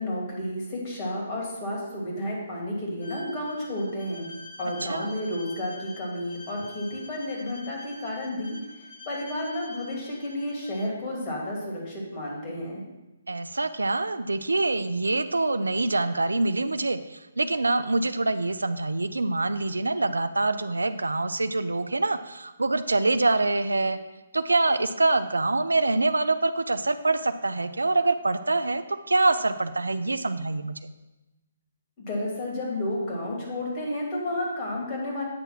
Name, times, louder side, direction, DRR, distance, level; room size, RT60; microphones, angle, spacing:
voice 1, 0.0-4.3 4.6-12.8 32.0-35.2, left 1 dB, 30° left, -3 dB, 2.5 m, -31 dB
Bowed string instrument, 3.0-10.9, left 2 dB, 55° left, 2.1 m, -46 dB
voice 2, 13.3-24.0 24.3-30.9, right 2 dB, 90° right, 12 dB, 0.4 m, -25 dB
8.8 x 3.4 x 5.9 m, 1.0 s
hypercardioid pair, 140°, 0 cm